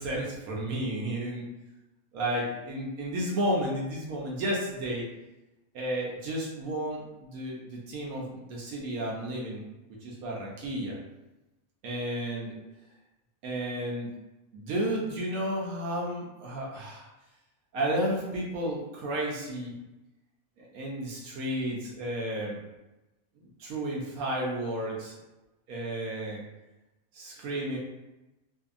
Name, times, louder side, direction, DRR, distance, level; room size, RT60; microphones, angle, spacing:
voice 1, 0.0-1.4 2.1-5.1 5.7-9.6 10.0-11.0 11.8-12.5 13.4-14.1 14.5-17.1 17.7-19.7 20.6-22.6 23.6-25.1 25.7-26.4 27.1-27.8, right 1 dB, 90° right, -3 dB, 1.1 m, -32 dB
2.6 x 2.6 x 2.4 m, 1.0 s
omnidirectional pair, 1.5 m